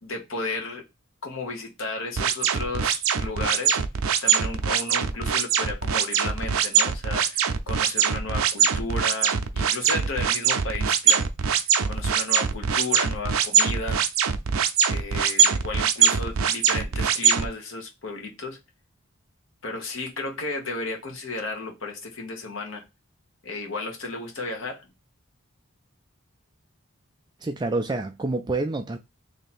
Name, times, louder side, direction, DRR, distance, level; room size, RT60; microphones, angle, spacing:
voice 1, 0.0-0.8 1.2-3.8 4.2-14.0 14.9-18.6 19.6-22.8 23.4-24.9, left 3 dB, 70° left, 1.1 m, -34 dB
sound 1, 2.2-17.5, right 7 dB, 85° right, 0.5 m, -22 dB
voice 2, 27.4-29.0, right 2 dB, 20° right, 0.3 m, -27 dB
3.2 x 2.8 x 4.1 m
head